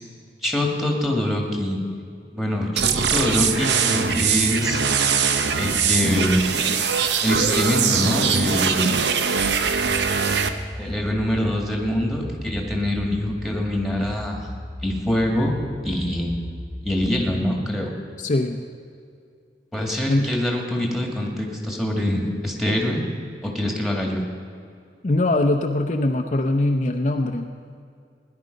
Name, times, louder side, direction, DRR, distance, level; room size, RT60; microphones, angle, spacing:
voice 1, 0.4-1.8 2.3-4.8 5.6-6.4 7.2-9.0 10.7-14.5 14.8-15.5 15.8-16.3 16.8-17.9 19.7-23.0 23.4-24.2, left 1 dB, ahead, 0 dB, 1.9 m, -24 dB
sound 1, 2.8-10.5, right 6 dB, 80° right, 0.8 m, -22 dB
sound 2, 9.3-17.3, left 1 dB, 45° right, 4.5 m, -37 dB
voice 2, 18.2-18.6 20.1-20.3 25.0-27.5, left 2 dB, 45° left, 3 dB, 0.6 m, -22 dB
17.0 x 11.0 x 5.2 m, 2.4 s
head